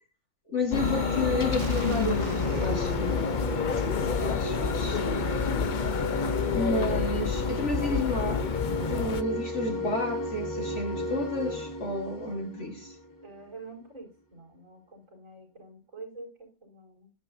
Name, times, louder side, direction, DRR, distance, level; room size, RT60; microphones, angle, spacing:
voice 1, 0.5-3.3 3.7-3.9 4.2-5.1 6.5-8.5 8.9-13.0, left 2 dB, 45° left, 1.9 m, -31 dB
sound 1, 0.6-13.3, equal, 15° left, 1.1 m, -35 dB
sound 2, 0.7-9.2, left 6 dB, 60° left, 0.4 m, -29 dB
sound 3, 0.8-6.5, right 6 dB, 65° right, 1.4 m, -42 dB
voice 2, 13.2-17.1, right 3 dB, 50° right, 5.6 m, -47 dB
12.0 x 11.0 x 2.7 m
omnidirectional pair, 1.8 m